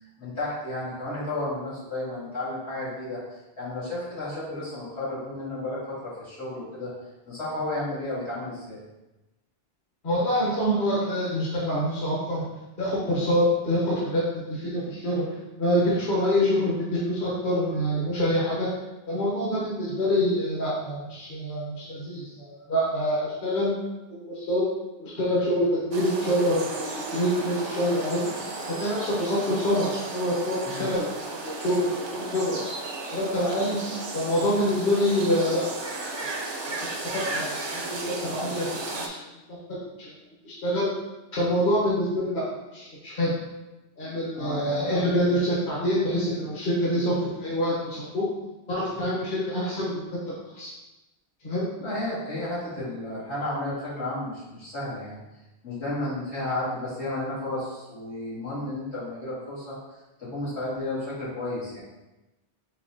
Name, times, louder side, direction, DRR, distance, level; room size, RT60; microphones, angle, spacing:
voice 1, 0.2-6.9 7.3-8.8 30.6-30.9 44.4-45.0 49.0-49.1 51.8-55.2 55.6-59.8 60.2-61.8, left 1 dB, 80° left, -10 dB, 2.1 m, -32 dB
voice 2, 10.0-12.4 12.8-15.2 15.6-18.7 19.1-23.7 24.3-24.6 25.0-28.3 28.7-31.1 31.4-32.6 33.1-33.8 34.1-35.6 36.0-36.3 37.2-39.2 40.0-40.1 40.4-40.9 41.3-42.4 42.7-43.3 44.0-48.3 48.7-50.7 51.4-51.7, equal, 50° left, -7 dB, 1.2 m, -26 dB
sound 1, 25.9-39.1, right 2 dB, 45° right, 0.3 m, -34 dB
4.7 x 3.9 x 2.6 m, 1.0 s
omnidirectional pair, 1.1 m